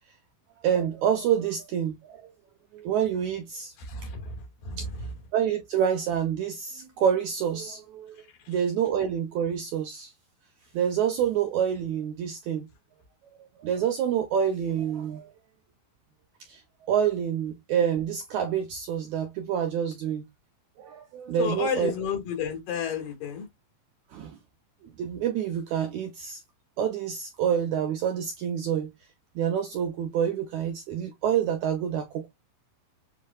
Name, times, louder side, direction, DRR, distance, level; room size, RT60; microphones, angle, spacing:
voice 1, 0.6-2.3 2.7-3.7 5.3-8.2 8.5-10.1 10.7-12.7 13.6-15.3 16.5-16.6 16.9-20.2 20.8-21.9 24.1-24.4 25.0-26.4 26.8-28.9 29.3-32.3, right 8 dB, 75° right, 1.7 m, -27 dB
voice 2, 3.8-4.2 4.7-4.8 21.4-23.5, left 7 dB, 70° left, 3.5 m, -31 dB
7.5 x 3.1 x 2.3 m
omnidirectional pair, 4.1 m